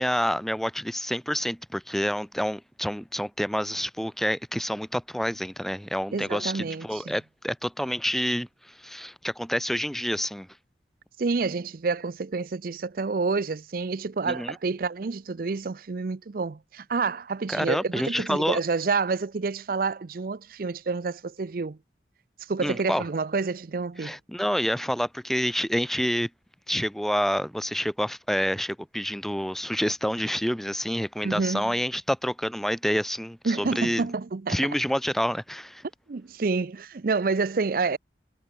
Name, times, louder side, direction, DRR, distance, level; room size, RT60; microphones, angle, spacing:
voice 1, 0.0-10.5 14.3-14.6 17.5-18.6 22.6-23.0 24.0-26.3 26.7-34.1 34.5-35.8, equal, ahead, 0.9 m, -28 dB
voice 2, 6.1-7.2 11.2-21.8 22.5-24.2 31.2-31.7 33.4-34.7 36.1-38.0, right 4 dB, 55° right, 0.5 m, -28 dB
head